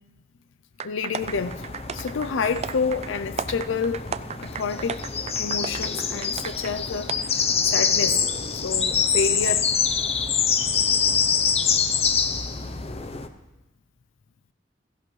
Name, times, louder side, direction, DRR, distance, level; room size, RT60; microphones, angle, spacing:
voice 1, 0.8-1.6 1.9-5.0 5.4-8.3 8.5-9.7, left 5 dB, 70° left, 0.5 m, -29 dB
sound 1, 0.8-6.7 7.1-7.2, right 6 dB, 35° right, 0.4 m, -34 dB
sound 2, 1.2-13.3, left 6 dB, 30° left, 0.7 m, -25 dB
16.0 x 14.5 x 3.2 m
head